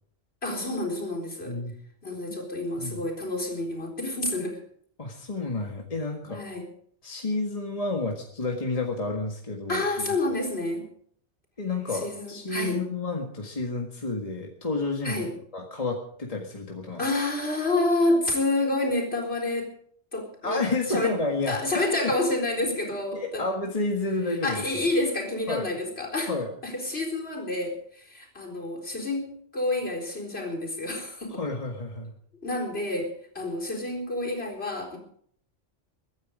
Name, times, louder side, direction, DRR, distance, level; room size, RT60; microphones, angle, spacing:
voice 1, 0.4-1.6 2.0-4.6 6.2-6.7 9.7-10.9 11.9-12.8 15.0-15.3 17.0-19.7 20.1-21.1 21.4-23.5 24.4-26.3 26.6-29.3 29.5-31.4 32.4-35.0, left 2 dB, 55° left, -1 dB, 4.4 m, -28 dB
voice 2, 1.5-1.8 2.3-2.4 2.8-3.0 5.0-6.4 7.0-10.2 11.6-15.2 15.5-17.0 20.4-22.1 23.1-24.9 25.5-25.7 26.3-26.5 31.3-32.1, left 3 dB, 30° left, 1 dB, 1.8 m, -30 dB
23.0 x 9.7 x 5.1 m, 0.63 s
omnidirectional pair, 1.2 m